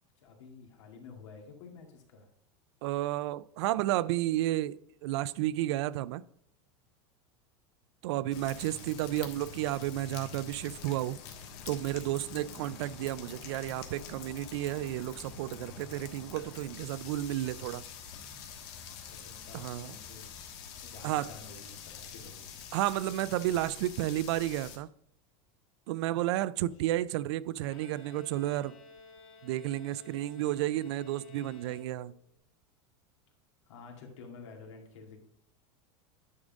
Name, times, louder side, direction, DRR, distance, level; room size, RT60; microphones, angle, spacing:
voice 1, 0.0-2.3 18.9-20.3 20.7-22.5 33.6-35.2, left 4 dB, 85° left, 2.2 m, -50 dB
voice 2, 2.8-6.2 8.0-11.2 11.7-17.8 19.5-20.0 21.0-21.3 22.7-24.9 25.9-28.8 29.4-32.2, right 14 dB, 65° right, 0.4 m, -32 dB
sound 1, 8.3-24.8, left 7 dB, 55° left, 1.4 m, -46 dB
Bowed string instrument, 27.6-32.3, left 3 dB, 30° left, 1.4 m, -54 dB
9.7 x 3.8 x 5.1 m
supercardioid pair, 160°, 15 cm